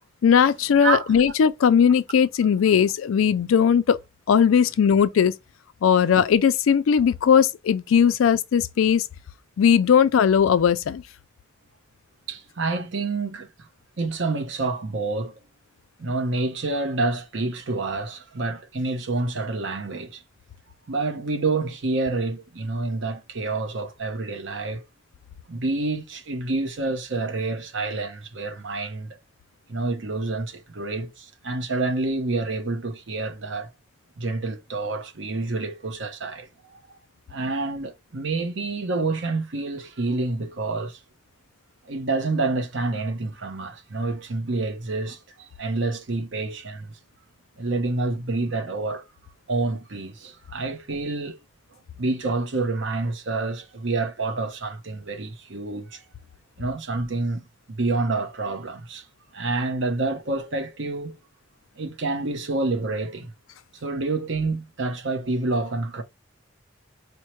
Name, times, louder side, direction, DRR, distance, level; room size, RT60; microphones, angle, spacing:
voice 1, 0.2-4.0 4.3-5.3 5.8-9.1 9.6-11.0, left 7 dB, 80° left, 0.4 m, -18 dB
voice 2, 12.3-13.7 14.0-15.3 16.0-20.2 20.9-24.9 25.5-29.1 29.7-33.7 34.2-36.5 37.3-41.0 41.9-46.9 47.6-49.0 49.5-51.4 52.0-56.0 56.6-57.4 57.7-59.0 59.3-61.2 61.8-63.3 63.8-66.0, right 3 dB, 65° right, 0.8 m, -28 dB
4.4 x 2.1 x 3.0 m
head